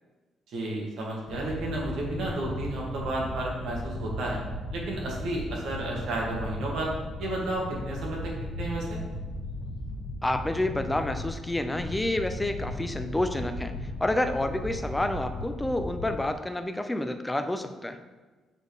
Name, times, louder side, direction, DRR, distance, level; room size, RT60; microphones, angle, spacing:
voice 1, 0.5-4.4 4.7-6.9 7.2-8.3 8.6-9.0, right 2 dB, 65° right, -2 dB, 1.6 m, -32 dB
sound 1, 1.3-16.3, left 1 dB, 65° left, 2.1 m, -36 dB
voice 2, 10.2-13.7 14.0-18.0, left 1 dB, 5° left, 8 dB, 0.3 m, -29 dB
8.1 x 4.1 x 3.4 m, 1.3 s
cardioid pair, 180°, 0 cm